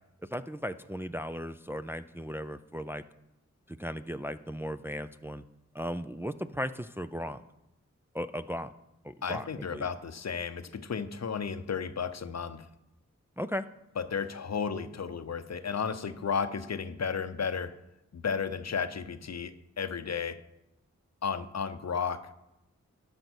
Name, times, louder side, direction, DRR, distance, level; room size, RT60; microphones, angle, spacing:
voice 1, 0.3-3.0 3.7-5.4 5.7-7.4 8.1-8.7 9.0-9.9 13.4-13.6, equal, 10° right, 10 dB, 0.4 m, -36 dB
voice 2, 9.2-12.7 14.0-17.7 18.1-20.4 21.2-22.3, left 6 dB, 60° left, 11 dB, 0.7 m, -33 dB
12.5 x 5.3 x 6.3 m, 0.90 s
cardioid pair, 50°, 30 cm